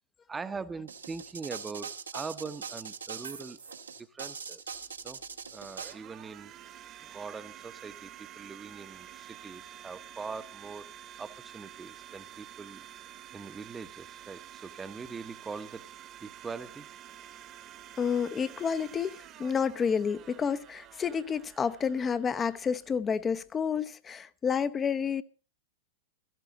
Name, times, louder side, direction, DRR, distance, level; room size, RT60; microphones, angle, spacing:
voice 1, 0.3-3.6 4.0-4.6 5.0-5.2 5.5-6.5 7.0-10.9 11.2-12.8 13.3-15.9 16.2-16.9, right 4 dB, 15° right, 1.0 m, -42 dB
sound 1, 0.9-5.9, right 6 dB, 80° right, 1.8 m, -41 dB
Domestic sounds home sounds, 4.7-23.5, right 11 dB, 35° right, 1.3 m, -50 dB
voice 2, 18.0-25.2, left 6 dB, 20° left, 0.8 m, -30 dB
17.0 x 14.0 x 4.0 m
figure-of-eight pair, 95°, 0 cm